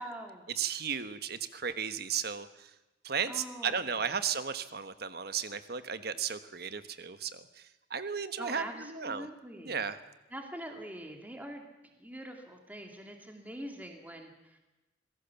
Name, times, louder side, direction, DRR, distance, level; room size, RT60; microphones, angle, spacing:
voice 1, 0.0-0.4 3.3-4.0 8.4-9.9 10.3-11.6 12.0-14.6, right 1 dB, 10° right, 3 dB, 2.4 m, -43 dB
voice 2, 0.6-2.7 3.0-9.3 9.6-10.0, right 6 dB, 60° right, 12 dB, 1.3 m, -35 dB
25.5 x 17.5 x 7.1 m, 1.0 s
head